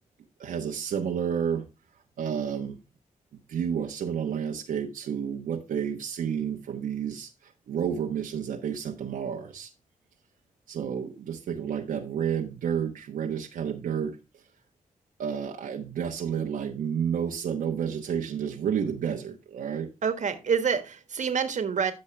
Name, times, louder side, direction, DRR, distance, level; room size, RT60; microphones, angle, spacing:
voice 1, 0.4-1.7 2.2-2.8 3.5-9.7 10.7-14.4 15.2-19.9, right 8 dB, 85° right, 1.1 m, -30 dB
voice 2, 20.0-21.9, right 6 dB, 60° right, 1.5 m, -27 dB
13.0 x 5.5 x 3.3 m
cardioid pair, 55°, 14 cm